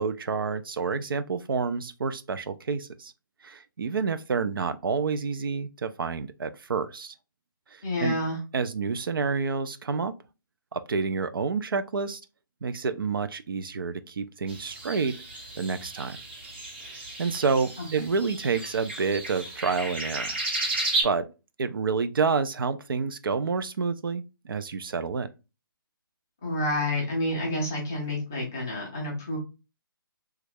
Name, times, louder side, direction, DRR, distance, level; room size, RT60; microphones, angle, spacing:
voice 1, 0.0-3.1 3.4-7.1 7.7-8.2 8.5-10.1 10.7-12.2 12.6-15.2 15.6-16.2 16.9-20.4 20.7-21.3 21.6-25.3, right 5 dB, 75° right, 0.4 m, -29 dB
voice 2, 7.8-8.4 17.8-17.9 26.4-29.4, left 1 dB, 10° left, 0.3 m, -29 dB
sound 1, 14.5-21.0, right 2 dB, 30° right, 0.8 m, -33 dB
3.1 x 2.3 x 3.3 m
hypercardioid pair, 175°, 12 cm